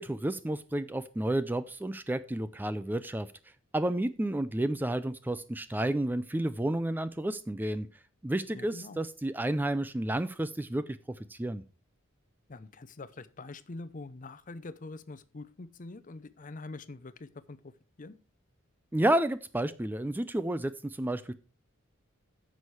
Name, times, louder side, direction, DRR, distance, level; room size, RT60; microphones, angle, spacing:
voice 1, 0.0-3.3 3.7-7.9 8.2-10.8 11.3-11.6 18.9-21.3, right 1 dB, 10° right, 13 dB, 0.3 m, -31 dB
voice 2, 8.5-9.0 12.5-17.7 18.0-18.2, left 3 dB, 40° left, 15 dB, 0.6 m, -44 dB
9.7 x 6.4 x 4.7 m, 0.35 s
head